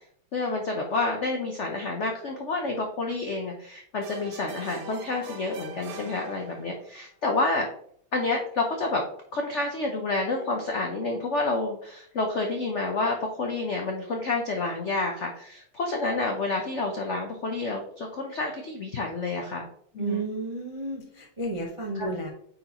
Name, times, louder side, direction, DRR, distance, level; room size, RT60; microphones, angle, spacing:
voice 1, 0.3-7.7 8.1-9.0 9.3-19.7 19.9-20.3 22.0-22.1, left 3 dB, 70° left, 2 dB, 0.6 m, -29 dB
sound 1, 4.0-7.0, right 4 dB, 65° right, 0.9 m, -43 dB
voice 2, 20.0-22.3, right 3 dB, 40° right, -1 dB, 0.4 m, -32 dB
9.0 x 4.2 x 2.9 m, 0.65 s
omnidirectional pair, 2.3 m